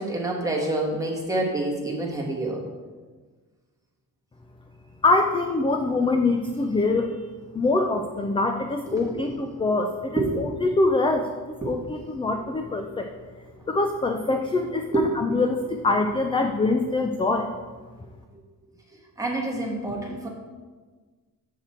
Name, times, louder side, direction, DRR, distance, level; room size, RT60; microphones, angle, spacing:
voice 1, 0.0-2.6 8.9-9.3 10.2-10.5 11.6-11.7 14.9-15.1 18.3-18.4 19.2-20.3, right 2 dB, 10° right, -2 dB, 1.3 m, -27 dB
voice 2, 5.0-7.3 7.5-11.3 11.6-13.1 13.7-17.5, left 3 dB, 15° left, 5 dB, 0.3 m, -24 dB
7.5 x 6.4 x 4.3 m, 1.4 s
wide cardioid pair, 170°, 36 cm